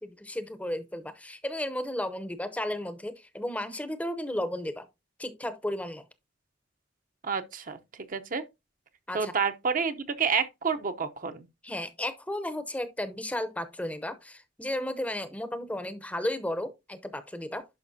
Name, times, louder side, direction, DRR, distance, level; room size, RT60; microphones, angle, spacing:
voice 1, 0.0-4.9 5.2-6.0 9.1-9.3 11.6-17.7, left 1 dB, 10° left, 0.7 m, -34 dB
voice 2, 7.2-7.8 8.1-8.4 9.1-11.5, right 5 dB, 45° right, 0.7 m, -29 dB
11.0 x 5.2 x 2.7 m
head